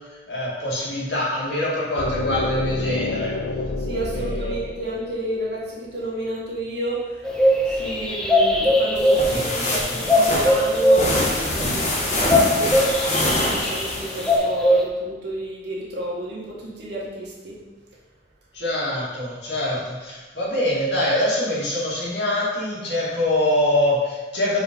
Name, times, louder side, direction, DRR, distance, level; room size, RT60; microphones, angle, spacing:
voice 1, 0.3-3.3 4.2-4.6 9.6-9.7 18.5-24.6, left 1 dB, 65° left, -6 dB, 2.3 m, -24 dB
sound 1, 2.0-5.9, left 2 dB, 85° left, 0.5 m, -29 dB
voice 2, 3.8-7.3 7.7-12.8 13.3-17.6, right 1 dB, 65° right, -5 dB, 1.8 m, -31 dB
sound 2, 7.2-14.8, left 1 dB, 5° left, 0.7 m, -20 dB
sound 3, 8.9-14.4, left 1 dB, 40° left, 1.4 m, -25 dB
5.2 x 4.7 x 5.4 m, 1.2 s
head